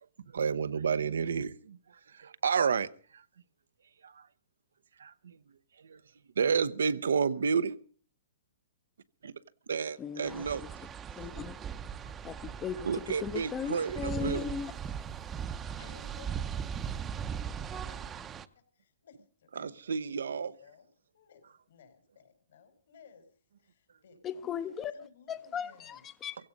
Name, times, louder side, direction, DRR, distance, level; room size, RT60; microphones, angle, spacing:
voice 1, 0.3-3.2 4.0-4.3 5.0-6.0 6.4-7.8 9.2-9.3 9.7-10.7 12.8-14.5 19.5-20.6, right 6 dB, 85° right, 0.8 m, -31 dB
voice 2, 10.0-10.4 11.2-11.5 12.2-12.9 13.2-14.7 24.2-24.9 25.3-26.4, left 7 dB, 20° left, 0.7 m, -37 dB
sound 1, 10.2-18.4, right 7 dB, 20° right, 0.7 m, -39 dB
voice 3, 15.6-20.9 21.1-23.3 23.6-26.0, left 5 dB, 75° left, 5.0 m, -59 dB
16.5 x 15.5 x 5.3 m
hypercardioid pair, 140°, 0 cm